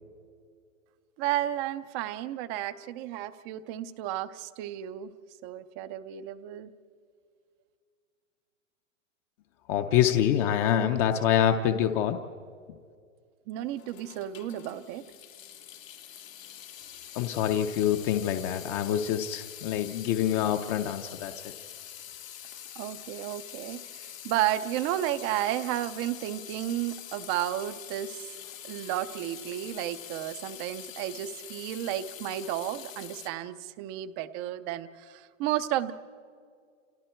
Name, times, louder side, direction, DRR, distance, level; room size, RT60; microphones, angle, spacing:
voice 1, 1.2-5.1 5.4-6.7 13.5-15.0 22.8-28.4 28.6-35.9, right 13 dB, 20° right, 13 dB, 0.5 m, -32 dB
voice 2, 9.7-12.2 17.2-21.5, left 10 dB, 25° left, 6 dB, 0.6 m, -26 dB
Water tap faucet / Sink (filling or washing) / Drip, 13.7-33.3, left 10 dB, 90° left, 2.4 m, -45 dB
30.0 x 29.0 x 4.5 m, 2.2 s
hypercardioid pair, 155°, 39 cm